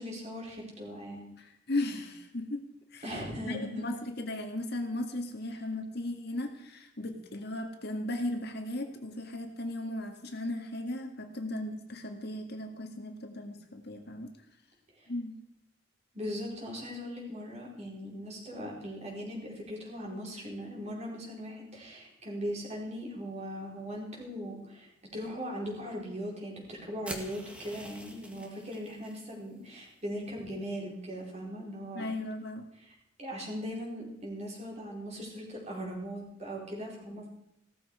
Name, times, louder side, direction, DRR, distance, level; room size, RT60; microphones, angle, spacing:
voice 1, 0.0-1.3 3.0-3.9 15.0-15.1 16.1-32.1 32.8-37.3, equal, 35° right, -3 dB, 4.8 m, -39 dB
voice 2, 1.4-2.6 2.9-3.2 3.5-14.3 15.1-15.4 31.9-32.7, left 1 dB, 55° left, 4 dB, 1.9 m, -36 dB
sound 1, 27.0-29.2, equal, 5° right, 1.7 m, -45 dB
17.0 x 13.5 x 5.0 m, 0.80 s
head